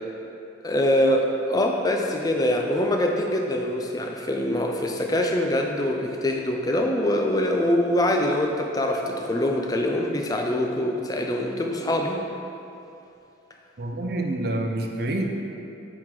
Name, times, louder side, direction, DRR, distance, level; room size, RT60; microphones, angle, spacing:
voice 1, 0.6-12.3, left 1 dB, 20° left, 2 dB, 0.5 m, -24 dB
voice 2, 13.8-15.3, right 1 dB, 55° right, 2 dB, 0.6 m, -27 dB
8.9 x 3.7 x 4.7 m, 2.8 s
head